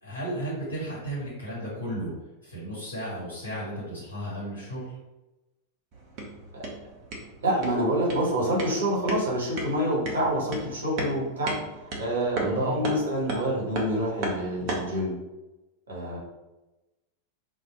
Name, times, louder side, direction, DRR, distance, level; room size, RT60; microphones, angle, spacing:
voice 1, 0.0-2.1 2.4-4.9 12.4-12.8, right 1 dB, 80° left, -8 dB, 1.5 m, -34 dB
sound 1, 5.9-15.0, right 2 dB, 40° right, 0.8 m, -36 dB
voice 2, 7.4-15.1 15.9-16.2, right 1 dB, 65° right, -4 dB, 1.3 m, -27 dB
2.6 x 2.6 x 4.2 m, 1.0 s
figure-of-eight pair, 90°, 0 cm